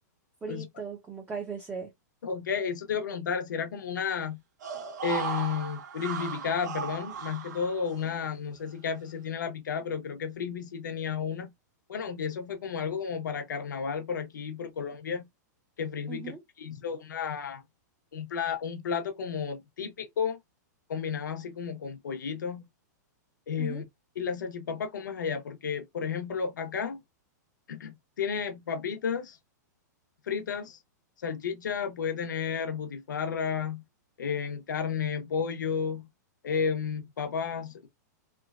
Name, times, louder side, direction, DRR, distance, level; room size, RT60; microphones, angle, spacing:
voice 1, 0.4-1.9 16.1-16.4 23.6-23.8, right 5 dB, 15° right, 0.7 m, -38 dB
voice 2, 2.2-4.4 5.0-11.5 11.9-15.3 15.8-16.3 16.6-17.6 18.1-20.4 20.9-22.6 23.5-23.8 24.2-27.0 27.7-29.4 30.3-30.8 31.2-33.8 34.2-36.0 36.4-37.9, left 6 dB, 90° left, 1.1 m, -32 dB
sound 1, 4.6-8.3 8.6-8.7, right 7 dB, 75° right, 1.0 m, -37 dB
3.5 x 2.2 x 2.4 m
hypercardioid pair, 150°, 10 cm